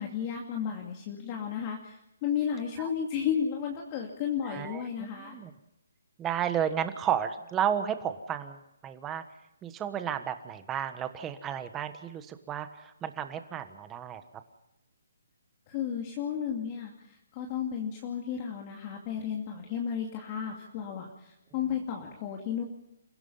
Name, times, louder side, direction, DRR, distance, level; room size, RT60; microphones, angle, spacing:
voice 1, 0.0-2.0 2.2-5.4 15.7-16.9 17.3-22.6, left 8 dB, 25° left, 1 dB, 2.5 m, -33 dB
voice 2, 4.4-5.5 6.2-9.2 9.6-14.2 21.7-21.8, right 9 dB, 15° right, 10 dB, 1.3 m, -33 dB
29.5 x 16.5 x 5.7 m, 0.86 s
hypercardioid pair, 165°, 0 cm